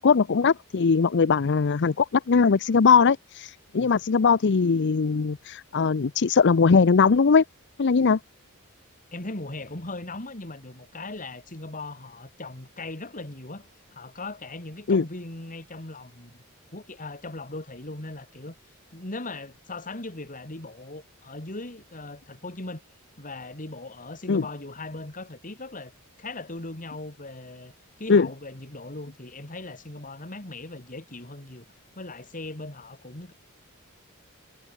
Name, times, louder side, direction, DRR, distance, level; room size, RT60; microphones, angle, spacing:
voice 1, 0.0-7.4 7.8-8.2 14.9-15.0 24.3-24.4 28.1-28.3, left 5 dB, 55° left, 0.5 m, -20 dB
voice 2, 9.1-16.4 16.7-18.6 18.9-22.8 23.2-25.9 26.2-27.7 28.0-31.6 32.0-33.3, left 2 dB, 40° left, 2.8 m, -39 dB
head